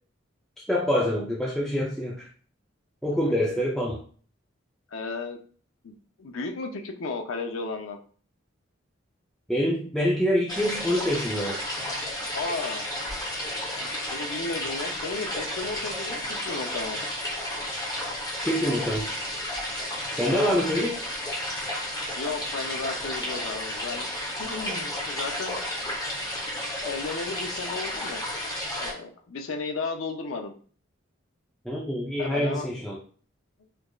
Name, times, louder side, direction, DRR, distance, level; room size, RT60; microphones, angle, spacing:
voice 1, 0.7-2.3 3.0-4.0 9.5-11.6 18.4-19.1 20.1-20.9 31.7-33.0, equal, ahead, -4 dB, 0.4 m, -26 dB
voice 2, 4.9-5.4 5.8-8.0 12.3-12.8 13.7-17.0 20.2-20.5 22.2-24.1 24.4-25.6 26.8-28.2 28.8-30.5 32.2-32.7, left 3 dB, 80° left, 5 dB, 0.5 m, -34 dB
sound 1, 10.5-28.9, left 1 dB, 20° left, 0.9 m, -32 dB
4.6 x 2.4 x 2.3 m, 0.44 s
head